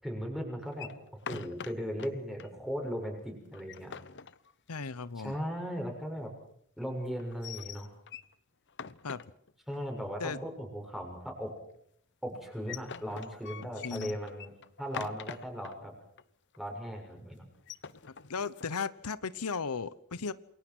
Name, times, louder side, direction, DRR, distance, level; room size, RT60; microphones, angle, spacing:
voice 1, 0.0-3.9 5.2-6.3 6.8-7.9 9.7-11.5 12.2-14.5 14.8-15.9 16.6-17.5, equal, ahead, 2 dB, 6.7 m, -37 dB
sound 1, 0.7-2.1 2.4-2.5 2.8-2.9 3.4-5.0 7.2-8.3 8.7-9.8 12.3-15.8 16.2-16.3 16.5-16.9 17.5-18.7, left 6 dB, 55° left, 1.0 m, -44 dB
voice 2, 4.7-5.4 9.0-9.2 10.2-10.4 13.8-14.1 18.3-20.3, left 5 dB, 85° left, 17 dB, 0.9 m, -35 dB
28.0 x 22.5 x 6.3 m, 0.67 s
head